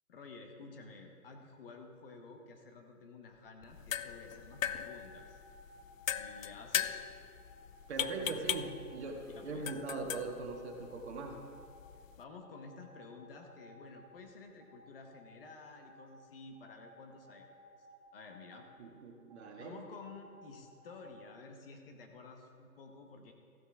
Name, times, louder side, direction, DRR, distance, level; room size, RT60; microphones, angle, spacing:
voice 1, 0.1-5.4 6.2-7.0 9.3-9.7 12.2-17.5 18.1-18.7 19.6-23.3, left 4 dB, 40° left, 4 dB, 1.1 m, -52 dB
sound 1, 3.6-12.2, left 9 dB, 60° left, 0.5 m, -40 dB
sound 2, 3.6-3.7 4.5-6.9 7.4-8.0 8.5-8.8 9.3-11.9 12.4-14.3 14.6-15.3 15.7-16.1 16.5-18.8 19.3-21.1, equal, 10° right, 0.9 m, -59 dB
voice 2, 7.9-11.3 18.8-19.8, right 3 dB, 45° right, 1 dB, 1.8 m, -41 dB
14.5 x 8.2 x 3.6 m, 2.4 s
hypercardioid pair, 145°, 46 cm